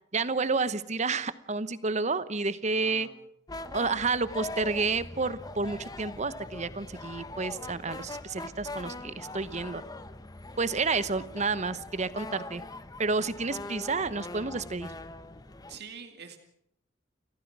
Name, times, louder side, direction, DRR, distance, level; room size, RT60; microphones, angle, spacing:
voice 1, 0.1-3.1 3.7-9.8 10.6-12.6 13.0-14.9, right 4 dB, 40° right, 15 dB, 1.0 m, -30 dB
voice 2, 2.7-3.2 15.7-16.4, right 6 dB, 60° right, 6 dB, 2.5 m, -46 dB
sound 1, 3.5-15.8, left 2 dB, 20° left, 1.0 m, -42 dB
29.5 x 14.5 x 6.1 m, 0.71 s
head